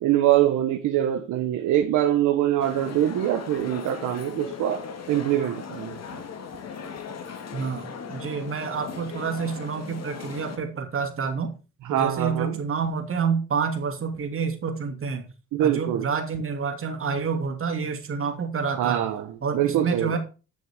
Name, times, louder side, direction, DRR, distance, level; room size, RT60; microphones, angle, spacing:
voice 1, 0.0-6.0 11.8-12.6 15.5-16.1 18.8-20.2, right 12 dB, 85° right, 1.3 m, -24 dB
Aeroport-Chinois embarq(st), 2.6-10.6, left 6 dB, 60° left, 2.2 m, -38 dB
voice 2, 7.5-11.5 11.9-15.3 15.6-19.1 19.4-20.2, right 5 dB, 45° right, 2.9 m, -28 dB
10.5 x 6.5 x 5.1 m
cardioid pair, 90°, 30 cm